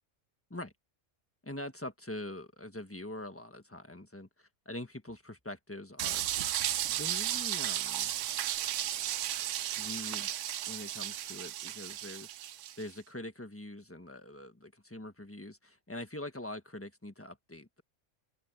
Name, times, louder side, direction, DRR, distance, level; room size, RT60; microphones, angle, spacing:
voice 1, 1.4-6.2 6.9-8.1 9.7-10.3 10.7-12.3 12.8-17.8, left 1 dB, 10° left, 1.4 m, -44 dB
sound 1, 6.0-12.8, right 12 dB, 80° right, 1.0 m, -34 dB
open air
omnidirectional pair, 1.3 m